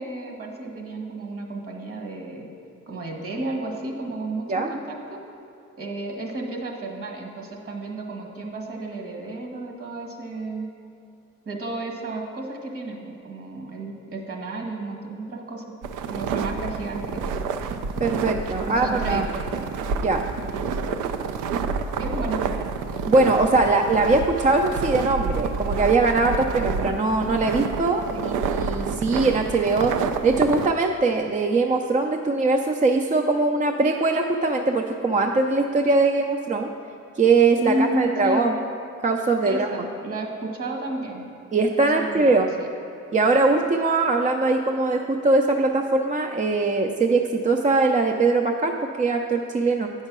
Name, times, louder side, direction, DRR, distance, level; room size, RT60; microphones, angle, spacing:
voice 1, 0.0-2.5 2.9-5.2 5.8-10.7 11.4-15.6 16.1-17.4 18.6-19.2 22.0-22.7 28.1-28.3 37.6-38.5 39.4-41.3 41.8-42.7, right 2 dB, 50° right, 2 dB, 1.6 m, -32 dB
sound 1, 15.8-30.7, right 5 dB, 80° right, 0.5 m, -28 dB
voice 2, 18.0-19.3 20.0-20.2 23.1-36.7 37.2-38.6 39.0-39.7 41.5-42.5 43.1-49.9, right 3 dB, 25° right, 3 dB, 0.4 m, -21 dB
8.7 x 5.5 x 6.0 m, 2.7 s
cardioid pair, 90°, 30 cm